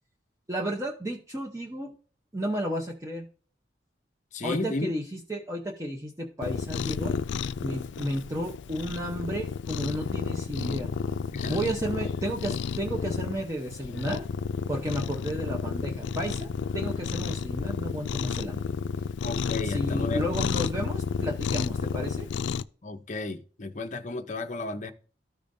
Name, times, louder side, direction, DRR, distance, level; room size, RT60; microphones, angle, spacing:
voice 1, 0.5-1.9 2.3-3.3 4.4-7.1 7.6-10.9 11.3-14.2 14.7-16.5 16.7-18.6 19.6-22.3, right 1 dB, 15° right, 0.8 m, -32 dB
voice 2, 4.3-4.9 11.4-11.6 19.2-20.2 22.8-24.9, left 2 dB, 40° left, 0.7 m, -33 dB
Cat, 6.4-22.6, left 6 dB, 80° left, 0.3 m, -31 dB
14.0 x 5.0 x 2.6 m
head